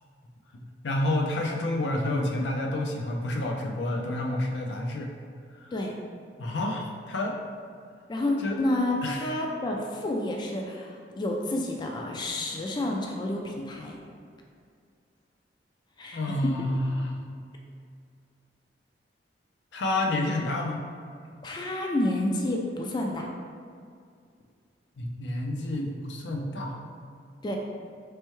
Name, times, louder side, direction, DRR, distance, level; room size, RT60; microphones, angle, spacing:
voice 1, 0.5-5.1 5.6-5.7 6.4-7.4 8.4-8.6 9.0-9.3 16.1-17.2 19.7-20.8 25.0-26.8, left 1 dB, 80° left, 0 dB, 0.5 m, -29 dB
voice 2, 8.1-14.0 16.0-16.7 21.4-23.3 27.4-27.6, left 1 dB, 25° left, 0 dB, 0.3 m, -29 dB
4.4 x 3.3 x 3.0 m, 2.2 s
head